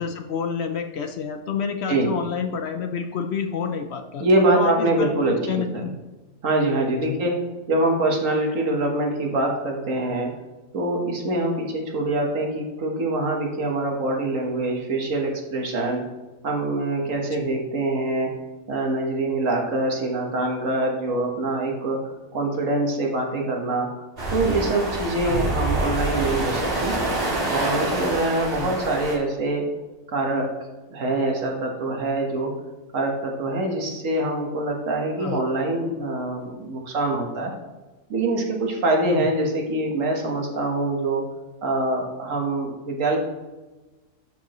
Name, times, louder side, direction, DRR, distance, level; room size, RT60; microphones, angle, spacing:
voice 1, 0.0-4.2 4.5-5.9 6.9-7.2 17.3-17.5 25.2-25.4 28.6-28.8 35.2-35.4 39.0-39.3, left 6 dB, 65° left, 6 dB, 0.8 m, -29 dB
voice 2, 4.2-5.9 6.4-7.4 7.7-10.3 10.7-16.0 16.4-18.3 18.7-23.9 24.3-26.9 27.5-29.6 30.1-30.5 30.9-32.5 32.9-37.5 38.1-41.2 41.6-43.2, right 2 dB, 75° right, 1 dB, 1.7 m, -24 dB
sound 1, 24.2-29.2, right 2 dB, 45° right, 1.9 m, -26 dB
11.5 x 4.8 x 3.0 m, 1.2 s
omnidirectional pair, 1.4 m